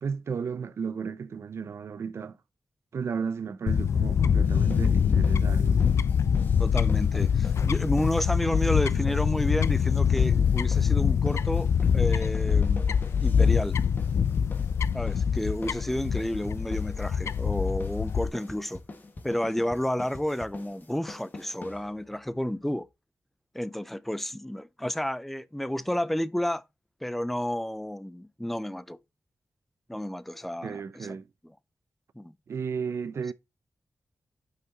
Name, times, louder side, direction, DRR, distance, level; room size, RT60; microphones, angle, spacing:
voice 1, 0.0-2.4 2.9-5.8 30.6-31.3 32.5-33.3, right 6 dB, 65° right, 0.5 m, -33 dB
Fowl / Bird, 3.7-18.3, left 7 dB, 70° left, 0.4 m, -24 dB
sound 1, 4.4-22.2, left 2 dB, 40° left, 1.6 m, -44 dB
voice 2, 6.6-12.8 13.2-13.8 14.9-18.8 19.2-22.9 23.5-26.6 27.0-29.0 29.9-31.2 32.2-32.3, left 1 dB, 5° left, 0.4 m, -31 dB
5.9 x 5.8 x 3.8 m
wide cardioid pair, 135°, 5 cm